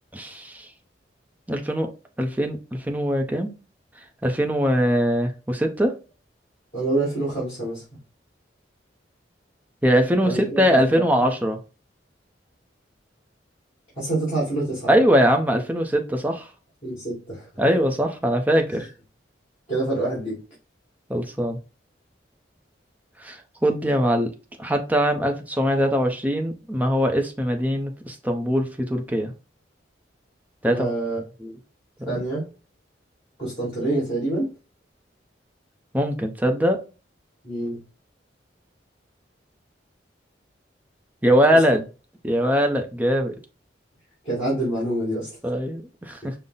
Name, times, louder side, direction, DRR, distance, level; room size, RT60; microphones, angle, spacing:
voice 1, 0.1-0.7 1.5-1.9 2.2-3.5 4.2-5.9 9.8-11.6 14.9-16.5 17.6-18.9 21.1-21.6 23.2-24.3 24.6-29.3 30.6-30.9 31.4-31.5 32.0-32.2 35.9-36.8 41.2-41.8 42.2-43.3 45.4-46.3, equal, 10° right, 0.6 m, -22 dB
voice 2, 6.7-7.8 10.2-11.0 14.0-14.9 16.8-17.5 18.8-18.9 19.7-20.4 30.7-31.2 32.1-32.4 33.4-34.5 37.4-37.8 44.2-45.3, right 2 dB, 30° left, 2.1 m, -26 dB
5.4 x 2.1 x 3.8 m
head